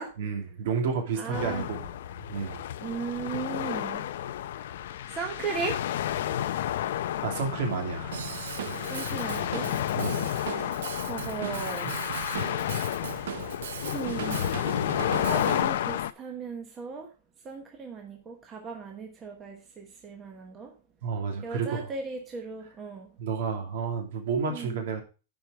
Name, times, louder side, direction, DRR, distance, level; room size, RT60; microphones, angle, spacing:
voice 1, 0.2-1.9 2.3-2.6 7.2-8.2 9.9-10.3 11.8-11.9 21.0-21.9 23.2-25.0, right 5 dB, 60° right, 3 dB, 2.5 m, -31 dB
voice 2, 1.2-1.7 2.8-4.0 5.1-5.8 8.9-9.7 9.9-10.3 10.5-10.7 11.1-11.9 13.2-13.5 13.9-14.6 15.0-17.1 17.4-20.7 21.4-23.1 24.5-24.8, right 5 dB, 15° right, 2 dB, 1.0 m, -37 dB
sound 1, 1.3-16.1, left 11 dB, 65° left, 0.5 m, -31 dB
Drum kit / Drum, 8.1-15.6, right 10 dB, 90° right, 0.5 m, -38 dB
10.0 x 4.8 x 4.9 m, 0.34 s
supercardioid pair, 175°, 0 cm